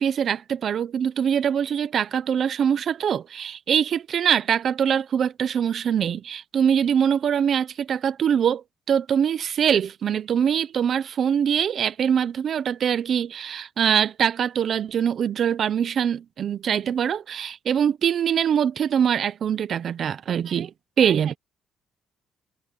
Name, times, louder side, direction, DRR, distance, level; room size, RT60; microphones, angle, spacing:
voice 1, 0.0-20.7 21.0-21.3, right 8 dB, 55° right, 0.9 m, -23 dB
voice 2, 21.0-21.4, right 10 dB, 70° right, 5.8 m, -41 dB
cardioid pair, 120°, 0 cm